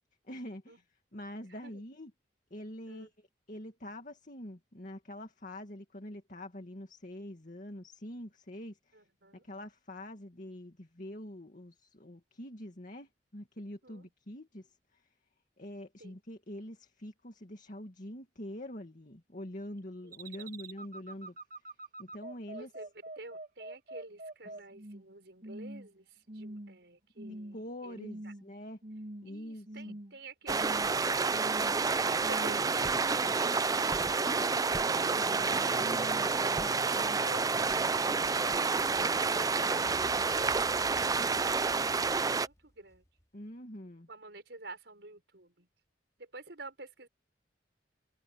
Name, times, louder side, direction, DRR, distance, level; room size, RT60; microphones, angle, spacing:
voice 1, 0.2-0.8 1.1-2.1 2.5-3.1 3.5-9.0 9.4-15.1 15.6-21.4 22.0-22.7 27.2-28.8 29.2-29.9 35.0-37.2 43.3-44.1, left 1 dB, 50° left, 2.1 m, -45 dB
voice 2, 1.5-1.8 2.9-3.1 8.9-9.5 13.8-14.1 16.0-16.2 20.0-20.5 22.5-28.3 29.3-36.5 42.2-43.0 44.1-45.7 46.2-47.1, right 2 dB, 75° right, 5.7 m, -50 dB
sound 1, 20.1-25.1 25.4-25.9 26.3-26.8 27.2-27.6 27.9-28.5 28.8-29.3 29.7-30.2 30.5-31.0 31.3-31.8 32.2-32.7 33.0-33.5, right 1 dB, 50° right, 1.9 m, -45 dB
sound 2, 30.5-42.5, right 4 dB, 20° right, 0.4 m, -29 dB
Fire, 38.7-43.2, equal, 20° left, 3.4 m, -54 dB
head